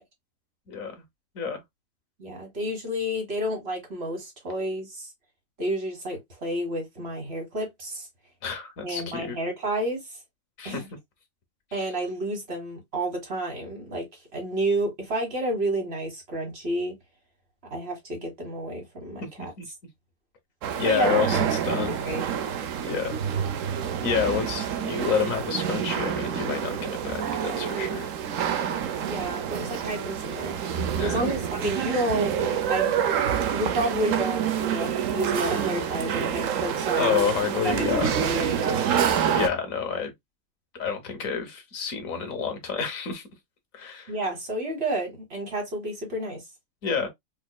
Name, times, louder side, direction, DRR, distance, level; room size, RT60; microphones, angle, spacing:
voice 1, 0.7-1.0 1.3-1.6 8.4-9.4 10.6-10.8 11.8-11.9 19.4-19.7 20.8-22.0 22.8-23.2 24.0-28.1 31.0-31.3 37.0-38.2 39.3-40.1 40.7-43.2 43.7-44.1 46.8-47.1, left 6 dB, 75° left, 1.5 m, -29 dB
voice 2, 2.2-5.1 5.6-8.1 8.8-10.0 10.7-10.9 11.7-14.1 14.3-17.0 17.7-19.5 20.8-21.5 21.9-22.3 29.0-30.6 31.0-32.3 32.7-32.9 33.5-37.3 37.6-38.9 44.1-46.4, right 1 dB, 50° right, 1.8 m, -30 dB
sound 1, 20.6-39.5, right 8 dB, 75° right, 1.0 m, -27 dB
5.0 x 2.7 x 2.2 m
omnidirectional pair, 1.4 m